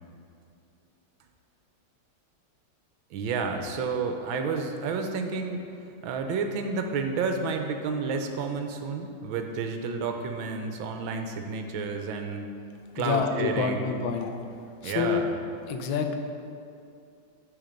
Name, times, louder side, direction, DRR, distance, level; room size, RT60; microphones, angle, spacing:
voice 1, 3.1-5.6 6.0-12.5 12.9-13.9 14.8-15.3, right 4 dB, 75° right, 5 dB, 1.5 m, -30 dB
voice 2, 12.9-14.4 14.8-15.2 15.7-16.2, left 6 dB, 85° left, 5 dB, 1.5 m, -27 dB
12.0 x 4.3 x 5.2 m, 2.5 s
omnidirectional pair, 2.2 m